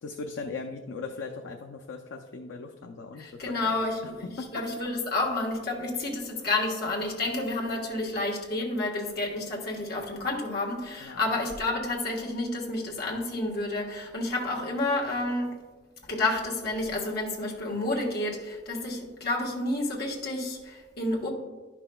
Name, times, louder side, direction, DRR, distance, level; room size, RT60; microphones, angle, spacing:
voice 1, 0.0-3.8 4.4-4.6 11.0-11.2, left 4 dB, 90° left, 3 dB, 0.5 m, -39 dB
voice 2, 3.2-15.6 16.0-21.3, left 2 dB, 55° left, -2 dB, 1.4 m, -30 dB
11.0 x 5.8 x 2.3 m, 1.3 s
head